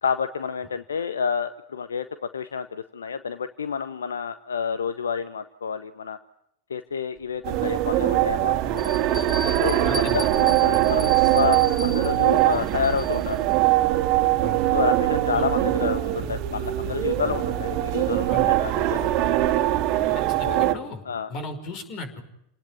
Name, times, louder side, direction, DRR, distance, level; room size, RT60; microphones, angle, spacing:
voice 1, 0.0-2.1 2.3-6.2 6.7-8.9 9.6-9.9 10.1-13.4 14.7-19.3 20.4-21.3, left 6 dB, 75° left, 12 dB, 1.0 m, -29 dB
Bell, 7.2-7.3 7.9-8.0 8.8-13.3, left 1 dB, 10° left, 6.3 m, -37 dB
sound 1, 7.4-20.7, right 14 dB, 45° right, 1.9 m, -22 dB
voice 2, 9.9-10.3 14.4-14.6 15.3-15.4 18.3-18.5 20.2-21.0 21.3-22.2, left 3 dB, 45° left, 10 dB, 5.4 m, -36 dB
29.0 x 19.0 x 9.6 m, 0.79 s
figure-of-eight pair, 85°, 0 cm